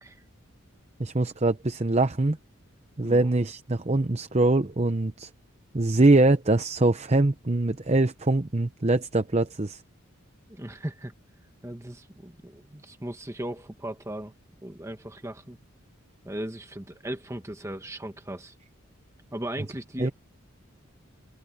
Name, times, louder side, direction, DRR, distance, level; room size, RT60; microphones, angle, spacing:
voice 1, 1.0-2.4 3.0-5.3 5.7-9.8 20.0-20.1, right 2 dB, 30° right, 0.8 m, -23 dB
voice 2, 10.5-11.1 11.6-14.3 14.6-15.6 16.2-18.5 19.3-20.1, right 1 dB, 15° right, 1.2 m, -37 dB
open air
head